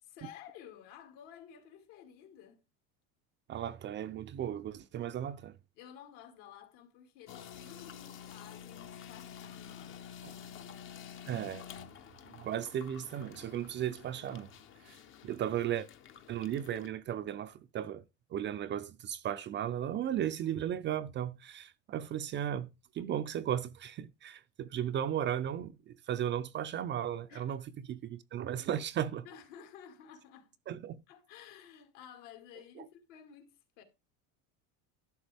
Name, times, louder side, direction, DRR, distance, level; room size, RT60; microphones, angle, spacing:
voice 1, 0.0-2.6 5.8-10.8 27.3-27.6 29.2-30.5 31.1-33.8, left 9 dB, 70° left, 2.2 m, -53 dB
voice 2, 3.5-5.6 10.2-10.3 11.3-11.7 12.3-14.5 14.8-15.0 15.2-15.9 16.3-18.0 18.3-22.7 22.9-27.6 27.9-29.3 30.7-31.0 32.8-32.9, right 10 dB, 30° right, 0.5 m, -35 dB
sound 1, 7.3-16.9, left 8 dB, 35° left, 0.8 m, -50 dB
11.5 x 6.6 x 3.4 m
cardioid pair, 140°, 37 cm